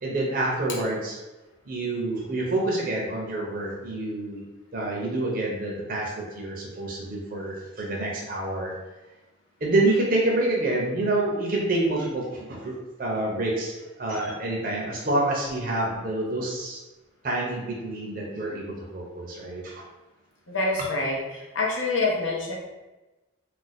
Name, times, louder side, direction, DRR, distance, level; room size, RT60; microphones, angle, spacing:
voice 1, 0.0-1.2 1.7-4.4 4.7-8.7 9.6-12.7 13.0-16.8 17.2-19.8, right 2 dB, 45° right, -3 dB, 0.6 m, -27 dB
voice 2, 20.5-22.6, left 3 dB, 70° left, -2 dB, 0.7 m, -26 dB
2.5 x 2.2 x 4.0 m, 1.1 s
head